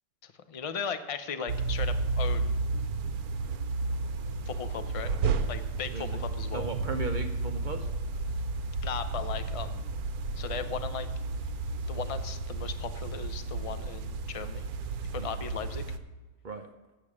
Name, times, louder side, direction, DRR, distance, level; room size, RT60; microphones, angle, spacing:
voice 1, 0.2-2.6 4.5-5.1 5.5-6.7 8.8-9.9 10.4-11.1 11.9-14.7 15.1-15.8, left 7 dB, 50° left, 10 dB, 0.4 m, -37 dB
sound 1, 1.5-16.0, right 3 dB, 80° right, 1.2 m, -32 dB
voice 2, 5.9-6.2 6.5-7.9 15.2-15.3 16.4-16.7, right 3 dB, 45° right, 5 dB, 0.6 m, -36 dB
8.4 x 7.4 x 8.5 m, 1.2 s
omnidirectional pair, 1.6 m